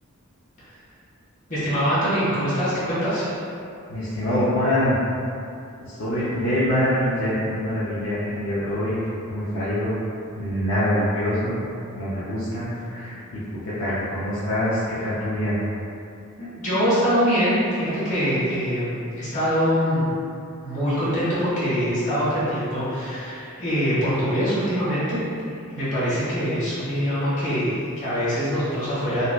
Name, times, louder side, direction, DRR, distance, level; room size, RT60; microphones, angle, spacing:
voice 1, 1.5-3.3 16.4-20.0 20.6-25.2 25.7-29.3, equal, 35° left, -12 dB, 1.3 m, -23 dB
voice 2, 3.9-5.0 5.8-10.0 10.3-11.6 12.0-15.6, equal, 65° left, -11 dB, 0.6 m, -25 dB
4.1 x 2.2 x 2.3 m, 2.6 s
head